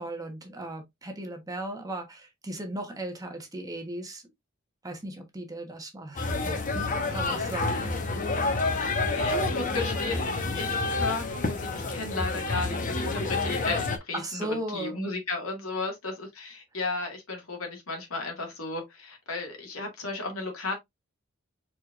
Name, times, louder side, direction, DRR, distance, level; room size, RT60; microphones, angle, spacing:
voice 1, 0.0-4.2 4.8-7.9 14.1-15.1, right 1 dB, 15° right, 1.2 m, -37 dB
sound 1, 6.2-14.0, left 3 dB, 40° left, 1.0 m, -28 dB
voice 2, 9.1-20.7, left 3 dB, 90° left, 2.0 m, -34 dB
4.8 x 4.3 x 2.5 m
head